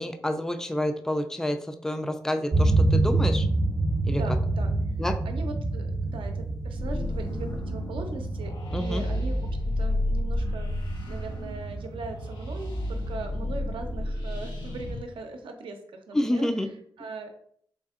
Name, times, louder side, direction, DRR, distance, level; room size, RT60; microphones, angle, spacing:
voice 1, 0.0-3.5 4.0-4.2 5.0-5.2 8.7-9.0 16.1-16.7, left 1 dB, 5° left, 7 dB, 0.4 m, -28 dB
sound 1, 2.5-14.1, right 2 dB, 45° right, 0.8 m, -28 dB
voice 2, 4.1-16.7 17.0-17.3, right 3 dB, 75° right, 5 dB, 0.6 m, -40 dB
sound 2, 6.7-15.0, left 1 dB, 65° left, 1.2 m, -32 dB
3.8 x 3.4 x 2.4 m, 0.64 s
supercardioid pair, 45°, 9 cm